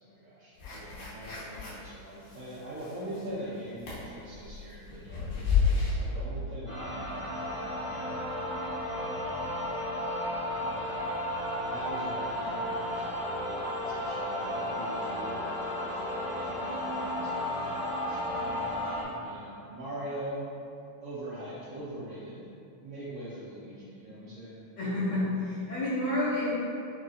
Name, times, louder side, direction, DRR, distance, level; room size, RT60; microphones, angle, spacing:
voice 1, 0.0-8.1 9.0-9.2 10.6-10.9 11.6-13.4 13.8-18.5 19.2-20.5 21.0-22.5 22.8-24.6, right 1 dB, 75° right, -10 dB, 1.3 m, -42 dB
sound 1, 0.6-1.9 2.2-3.4 3.8-5.9, left 6 dB, 85° left, 2.3 m, -30 dB
sound 2, 6.7-19.0, left 1 dB, 40° left, 1.0 m, -33 dB
voice 2, 24.8-26.5, left 1 dB, 65° left, -11 dB, 1.5 m, -29 dB
6.4 x 2.6 x 2.4 m, 2.7 s
omnidirectional pair, 3.3 m